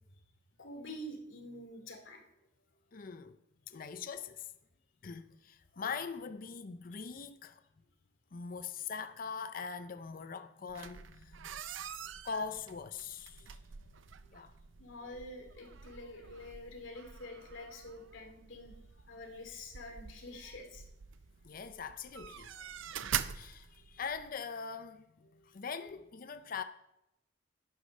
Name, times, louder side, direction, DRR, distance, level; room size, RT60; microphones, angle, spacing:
voice 1, 0.6-2.2 6.9-7.0 14.8-18.7 19.0-20.8 25.2-25.5, left 1 dB, 85° left, 2.7 m, -47 dB
voice 2, 2.9-3.4 3.7-4.5 5.0-7.6 8.3-11.6 12.2-13.6 14.3-14.5 21.4-22.5 23.3-26.6, left 5 dB, 45° left, 0.5 m, -42 dB
sound 1, 10.7-24.3, right 9 dB, 90° right, 0.6 m, -45 dB
11.5 x 9.7 x 5.4 m
head